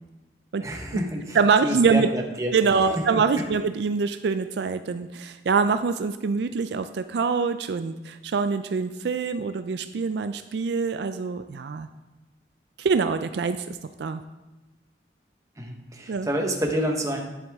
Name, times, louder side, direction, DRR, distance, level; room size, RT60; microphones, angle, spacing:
voice 1, 0.6-1.4 1.6-2.5 3.0-3.2 15.6-17.2, right 1 dB, 20° right, 2 dB, 1.1 m, -28 dB
voice 2, 1.3-2.1 2.5-11.9 12.8-14.2 16.1-16.3, right 5 dB, 70° right, 10 dB, 0.4 m, -24 dB
10.5 x 7.1 x 3.5 m, 1.1 s
head